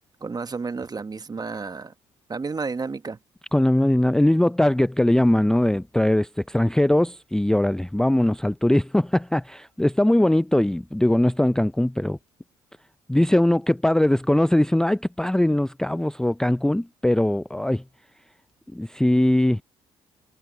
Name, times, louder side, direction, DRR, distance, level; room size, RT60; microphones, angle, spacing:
voice 1, 0.2-1.9 2.3-3.2, right 4 dB, 30° right, 1.3 m, -31 dB
voice 2, 3.5-12.2 13.1-17.8 18.7-19.6, left 1 dB, 5° left, 0.5 m, -21 dB
hypercardioid pair, 50°, 13 cm